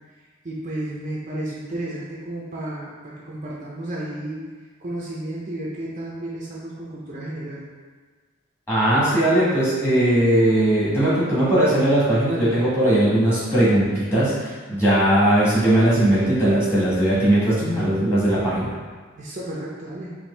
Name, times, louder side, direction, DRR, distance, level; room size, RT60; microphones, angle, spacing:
voice 1, 0.4-4.4 4.8-7.6 19.2-20.1, right 1 dB, 35° right, -5 dB, 0.5 m, -32 dB
voice 2, 8.7-18.7, right 1 dB, 15° left, -10 dB, 1.3 m, -19 dB
4.2 x 2.6 x 3.2 m, 1.5 s
head